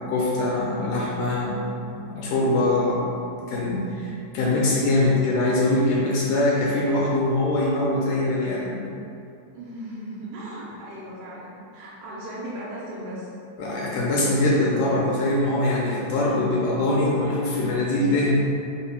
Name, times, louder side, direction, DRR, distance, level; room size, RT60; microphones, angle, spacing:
voice 1, 0.0-1.6 1.9-3.0 3.5-8.8 13.6-18.3, left 2 dB, 80° left, -5 dB, 1.6 m, -23 dB
voice 2, 9.5-13.3, right 1 dB, 90° right, -6 dB, 2.3 m, -37 dB
4.9 x 2.2 x 4.2 m, 2.6 s
omnidirectional pair, 3.4 m